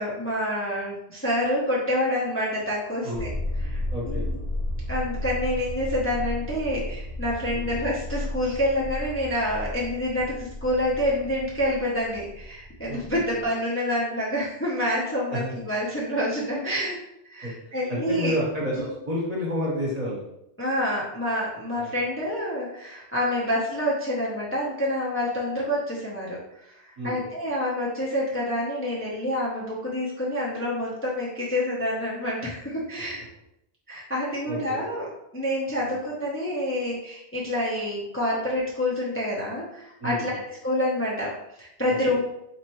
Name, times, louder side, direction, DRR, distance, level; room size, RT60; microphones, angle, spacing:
voice 1, 0.0-3.3 3.6-4.3 4.9-17.0 17.2-18.3 18.8-18.9 20.6-33.3 33.9-35.1 35.3-42.2, left 1 dB, 15° left, -6 dB, 0.7 m, -27 dB
sound 1, 3.1-13.5, left 1 dB, 85° left, 1.4 m, -33 dB
voice 2, 3.9-4.2 7.5-7.7 12.9-13.2 15.3-15.6 17.4-17.5 17.9-20.2 21.7-21.9 27.0-27.3 34.5-34.8 35.8-36.0 40.0-40.4 41.9-42.0, equal, 35° right, -5 dB, 1.3 m, -30 dB
4.2 x 3.0 x 3.0 m, 0.81 s
omnidirectional pair, 1.1 m